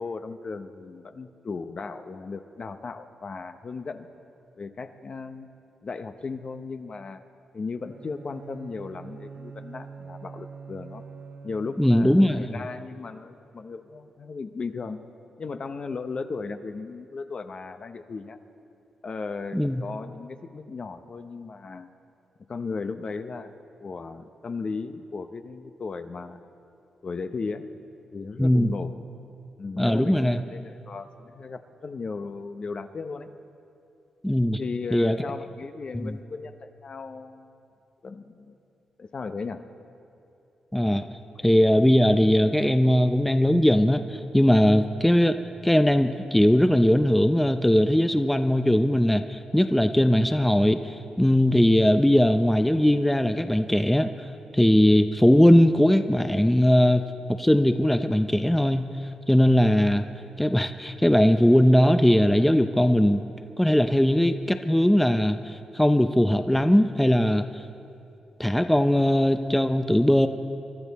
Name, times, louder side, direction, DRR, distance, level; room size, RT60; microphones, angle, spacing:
voice 1, 0.0-4.1 4.6-5.5 5.8-7.2 7.5-11.0 11.4-15.0 15.4-18.4 19.0-21.9 22.5-23.5 23.8-26.4 27.0-27.7 28.1-29.0 29.6-33.3 34.6-37.7 38.0-38.6 39.0-39.6, left 4 dB, 50° left, 8 dB, 0.8 m, -36 dB
Bowed string instrument, 7.8-12.6, right 5 dB, 70° right, 1.5 m, -44 dB
voice 2, 11.8-12.6 19.5-19.8 28.4-28.7 29.8-30.4 34.2-34.6 34.9-35.2 36.0-36.2 40.7-41.1 41.4-45.4 45.6-54.1 54.5-57.0 57.4-58.9 59.3-60.0 60.4-63.2 63.6-67.4 68.4-70.3, left 1 dB, 5° left, 8 dB, 0.6 m, -20 dB
24.5 x 12.0 x 4.2 m, 2.7 s
cardioid pair, 65°, 2 cm